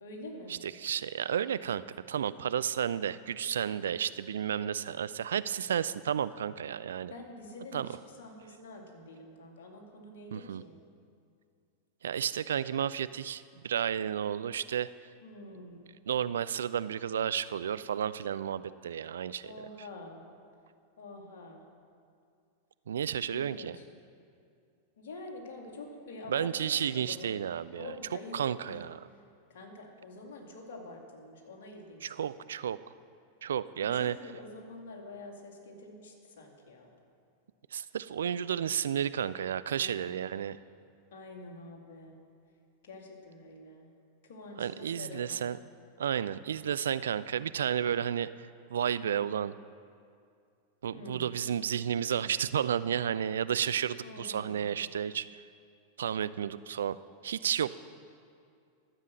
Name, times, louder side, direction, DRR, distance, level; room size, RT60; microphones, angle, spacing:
voice 1, 0.0-0.6 7.1-10.8 15.2-15.8 19.4-20.2 21.0-21.6 23.3-23.9 25.0-27.3 27.8-28.8 29.1-29.2 29.5-32.3 33.8-36.9 39.7-40.1 41.1-42.3 42.8-43.9 44.2-45.5 50.9-51.3 54.0-54.7, left 2 dB, 55° left, 1 dB, 2.2 m, -47 dB
voice 2, 0.6-7.1 7.7-7.9 10.3-10.6 12.0-14.9 16.1-19.5 22.9-23.8 26.3-27.9 28.3-29.0 32.0-32.8 33.4-34.2 37.7-40.6 44.6-45.6 46.0-49.5 50.8-55.4 56.0-57.0 57.2-57.8, right 9 dB, 65° right, 16 dB, 0.3 m, -32 dB
12.5 x 7.5 x 7.5 m, 2.3 s
figure-of-eight pair, 90°, 0 cm